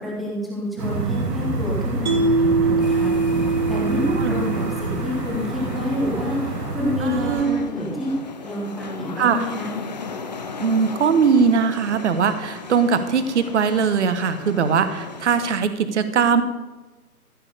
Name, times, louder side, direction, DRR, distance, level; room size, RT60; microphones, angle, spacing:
voice 1, 0.0-8.1 8.4-9.8, left 1 dB, ahead, -5 dB, 1.0 m, -28 dB
sound 1, 0.8-7.4, right 2 dB, 80° right, 2.4 m, -27 dB
Mallet percussion, 2.1-5.3, right 3 dB, 30° right, 1.2 m, -22 dB
sound 2, 2.8-15.7, left 4 dB, 30° left, 0.6 m, -37 dB
voice 2, 7.0-7.6 9.2-9.4 10.6-16.4, right 6 dB, 45° right, 11 dB, 1.2 m, -20 dB
14.5 x 7.3 x 6.5 m, 1.2 s
hypercardioid pair, 155°, 47 cm